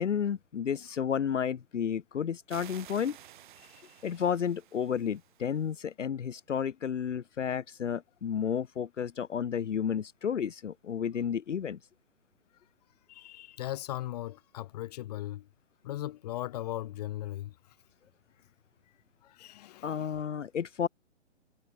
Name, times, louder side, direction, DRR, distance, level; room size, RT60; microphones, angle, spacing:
voice 1, 0.0-3.2 4.0-11.8 19.8-20.9, left 8 dB, 75° left, 0.7 m, -32 dB
sound 1, 2.5-5.8, right 12 dB, 40° right, 4.6 m, -52 dB
voice 2, 13.1-15.4 15.8-17.5 19.3-20.1, left 14 dB, 30° left, 1.5 m, -38 dB
figure-of-eight pair, 135°, 37 cm